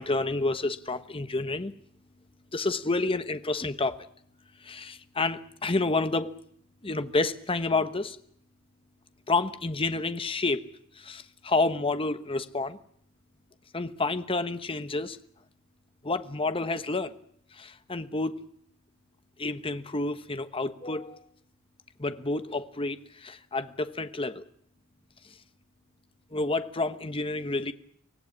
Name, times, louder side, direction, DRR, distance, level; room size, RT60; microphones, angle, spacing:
voice 1, 0.0-1.7 2.5-4.0 4.6-6.3 6.8-8.2 9.3-10.6 11.0-12.8 13.7-15.2 16.0-17.1 17.5-18.4 19.4-21.2 22.0-24.4 26.3-27.7, left 3 dB, 25° left, 1.1 m, -29 dB
24.5 x 17.5 x 9.8 m
head